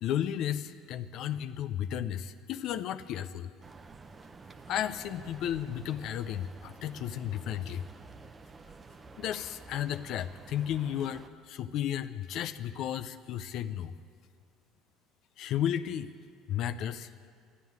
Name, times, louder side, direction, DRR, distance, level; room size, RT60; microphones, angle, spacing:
voice 1, 0.0-3.5 4.7-7.8 9.2-13.9 15.4-16.1 16.5-17.1, left 10 dB, 60° left, 11 dB, 0.5 m, -33 dB
sound 1, 3.6-11.3, right 4 dB, 25° right, 0.7 m, -50 dB
11.5 x 10.0 x 9.4 m, 2.1 s
supercardioid pair, 110°, 0 cm